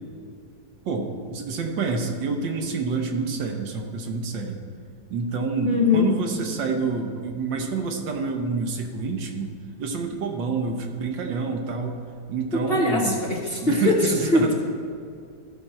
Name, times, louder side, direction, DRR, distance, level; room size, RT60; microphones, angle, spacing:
voice 1, 0.8-4.6 5.1-9.5 9.8-12.0 12.3-13.2 13.6-14.5, right 4 dB, 80° right, 3 dB, 1.7 m, -28 dB
voice 2, 5.6-6.1 12.5-14.5, left 3 dB, 45° left, -1 dB, 0.9 m, -22 dB
15.0 x 6.0 x 4.4 m, 2.4 s
omnidirectional pair, 2.0 m